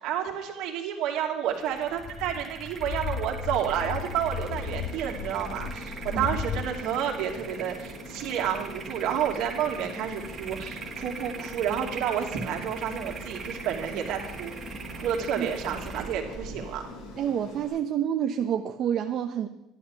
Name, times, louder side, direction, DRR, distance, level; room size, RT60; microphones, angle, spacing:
voice 1, 0.0-14.6 15.0-16.9, right 9 dB, 75° right, 1 dB, 2.6 m, -30 dB
sound 1, 1.5-17.8, right 5 dB, 40° right, 1.6 m, -42 dB
sound 2, 2.0-6.6, left 7 dB, 50° left, 0.9 m, -35 dB
Aircraft, 3.4-17.7, left 3 dB, 80° left, 4.9 m, -44 dB
voice 2, 17.2-19.5, right 9 dB, 55° right, 5 dB, 0.8 m, -28 dB
11.5 x 11.0 x 7.0 m, 0.96 s
cardioid pair, 110°, 0 cm